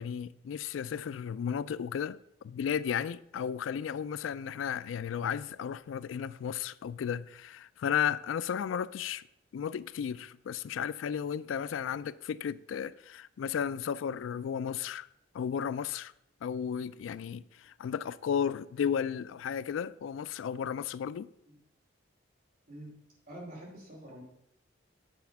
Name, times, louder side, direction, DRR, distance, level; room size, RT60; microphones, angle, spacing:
voice 1, 0.0-9.2 9.5-15.1 15.3-16.1 16.4-21.3, left 8 dB, 85° left, 0.3 m, -34 dB
voice 2, 23.3-24.2, right 1 dB, 50° right, 2.6 m, -46 dB
8.0 x 4.3 x 5.8 m
head